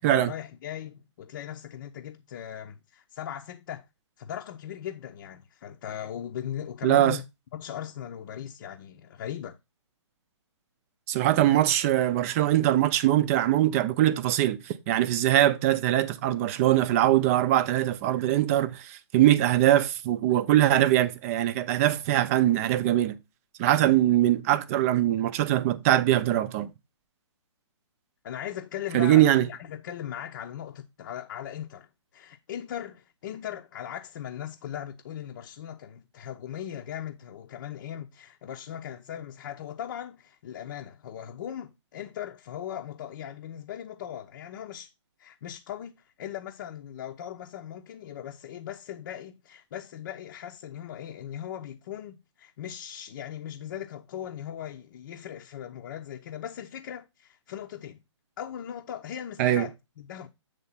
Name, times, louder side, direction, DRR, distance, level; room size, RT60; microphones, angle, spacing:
voice 1, 0.0-3.8 4.2-7.2 7.5-9.6 28.2-44.9 45.2-58.0 58.4-60.3, left 10 dB, 45° left, 0.7 m, -39 dB
voice 2, 6.8-7.2 11.1-23.2 23.6-26.7 28.9-29.5 59.4-59.7, right 13 dB, 30° right, 0.6 m, -22 dB
8.3 x 3.4 x 5.6 m
hypercardioid pair, 140°, 16 cm